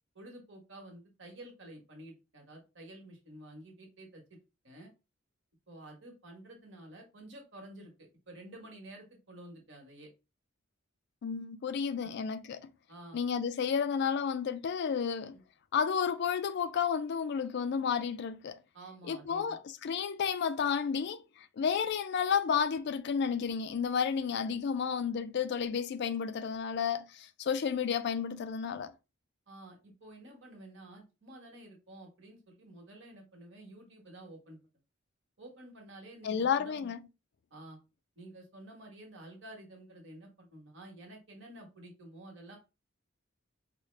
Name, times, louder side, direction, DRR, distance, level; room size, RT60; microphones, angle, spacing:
voice 1, 0.1-4.4 4.6-4.9 5.7-10.1 12.0-12.1 12.9-13.2 15.3-15.4 18.7-19.6 29.5-34.6 35.4-36.9 37.5-37.8 38.2-42.6, right 1 dB, 65° right, 1.4 m, -51 dB
voice 2, 11.2-12.7 13.1-15.4 15.7-18.6 19.1-28.9 36.2-37.0, left 7 dB, 55° left, 0.3 m, -32 dB
4.7 x 2.1 x 3.3 m
head